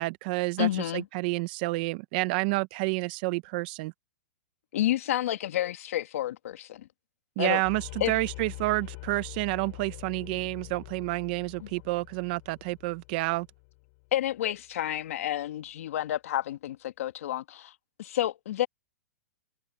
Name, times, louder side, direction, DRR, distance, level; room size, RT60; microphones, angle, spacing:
voice 1, 0.0-3.9 7.4-13.5, right 23 dB, 35° right, 0.7 m, -29 dB
voice 2, 0.6-1.1 4.7-6.9 7.4-7.6 8.0-8.1 11.6-11.7 14.1-17.7 18.0-18.7, left 13 dB, 65° left, 2.0 m, -30 dB
sound 1, 7.6-14.4, left 29 dB, 40° left, 3.4 m, -44 dB
hypercardioid pair, 160°, 8 cm